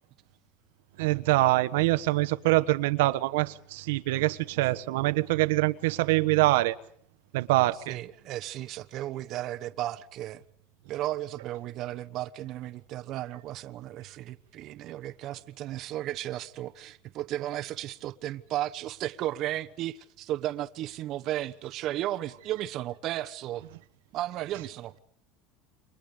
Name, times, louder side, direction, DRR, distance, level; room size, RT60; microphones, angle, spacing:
voice 1, 1.0-6.7 7.3-8.0, right 19 dB, 75° right, 1.2 m, -24 dB
voice 2, 7.9-10.4 10.9-23.6 24.1-25.0, right 14 dB, 35° right, 1.2 m, -34 dB
29.5 x 25.5 x 5.1 m
cardioid pair, 170°, 0 cm